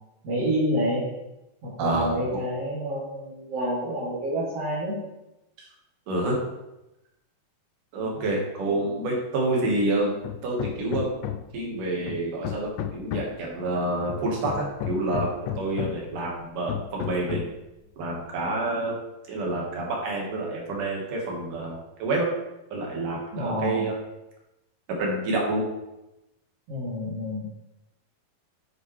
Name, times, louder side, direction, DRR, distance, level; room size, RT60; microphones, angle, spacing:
voice 1, 0.2-1.0 1.6-4.9 23.3-23.9 26.7-27.5, equal, 40° right, -11 dB, 2.7 m, -28 dB
voice 2, 1.8-2.4 5.6-5.7 6.1-6.4 7.9-10.2 10.4-11.1 11.5-15.3 15.6-17.4 18.0-18.9 19.3-22.3 22.7-24.0 25.0-25.6, right 2 dB, 60° right, -2 dB, 2.7 m, -28 dB
Hammer, 10.2-11.6 12.1-13.5 14.1-16.1 16.7-17.6, left 10 dB, 85° left, 2.8 m, -33 dB
8.3 x 7.7 x 3.3 m, 0.94 s
omnidirectional pair, 5.0 m